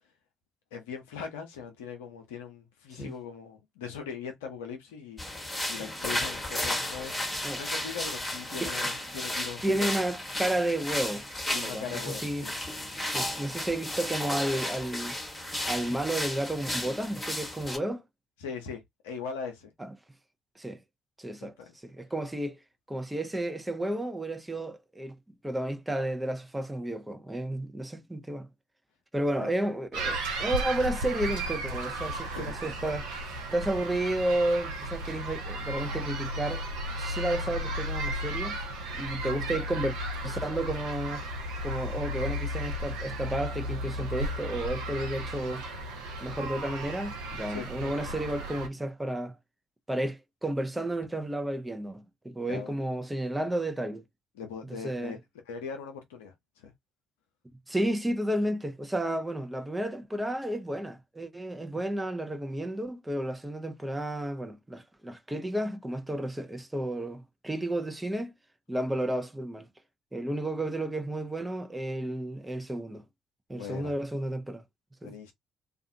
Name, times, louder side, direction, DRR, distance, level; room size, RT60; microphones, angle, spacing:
voice 1, 0.7-7.1 7.6-9.9 11.5-12.5 18.4-19.7 21.4-21.7 29.4-29.5 32.3-32.6 47.5-48.1 52.4-52.8 54.4-55.2 55.5-56.7 61.6-61.7 73.5-73.9 75.0-75.3, left 6 dB, 80° left, 0.7 m, -40 dB
sound 1, 5.2-17.8, left 1 dB, 15° left, 1.2 m, -34 dB
voice 2, 9.6-11.3 11.5-12.5 13.0-15.2 15.6-18.0 19.8-19.9 20.6-20.8 21.2-21.6 21.8-22.6 22.9-25.2 25.4-28.5 29.1-33.1 33.5-36.7 37.0-38.6 38.9-39.9 40.2-41.2 41.6-45.6 46.2-49.4 49.9-54.0 54.8-55.1 57.7-68.3 68.7-69.7 70.1-73.0 73.5-74.6 75.0-75.1, right 1 dB, 15° right, 0.7 m, -32 dB
sound 2, 29.9-48.7, right 1 dB, 75° right, 0.7 m, -34 dB
2.5 x 2.4 x 2.7 m
figure-of-eight pair, 50°, 0 cm